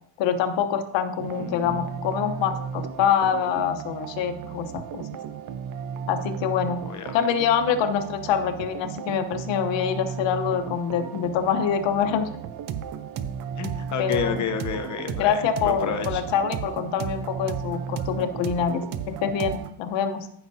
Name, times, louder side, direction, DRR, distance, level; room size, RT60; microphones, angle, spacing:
voice 1, 0.2-5.1 6.1-6.8 7.1-12.3 14.0-14.4 15.2-20.3, left 7 dB, 65° left, 8 dB, 1.1 m, -25 dB
sound 1, 1.2-19.7, right 7 dB, 45° right, 0.7 m, -34 dB
voice 2, 6.8-7.2 13.6-16.2, left 7 dB, 40° left, 7 dB, 0.9 m, -30 dB
15.0 x 6.0 x 2.7 m, 0.73 s
cardioid pair, 130°, 48 cm